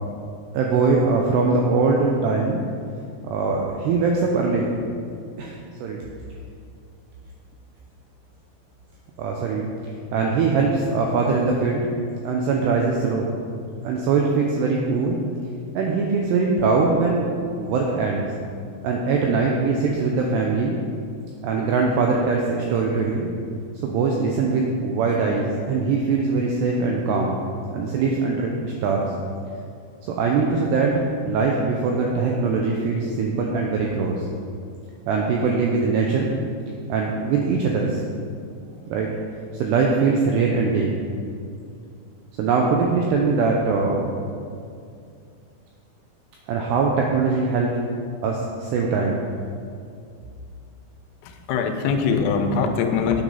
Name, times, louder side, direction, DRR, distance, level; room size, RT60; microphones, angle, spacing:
voice 1, 0.5-2.6 3.2-4.7 5.4-6.0 9.2-9.7 10.1-11.9 12.2-13.3 13.8-15.2 15.7-17.3 17.6-18.3 18.8-20.8 21.4-23.3 23.8-27.4 27.7-29.1 30.0-34.3 35.1-36.3 36.9-38.0 38.9-39.1 39.5-40.9 42.4-44.1 46.5-47.7 48.2-49.2, right 4 dB, 85° right, 0 dB, 2.4 m, -22 dB
voice 2, 51.2-53.2, left 5 dB, 90° left, 5 dB, 3.5 m, -22 dB
9.0 x 7.9 x 5.6 m, 2.4 s
omnidirectional pair, 5.8 m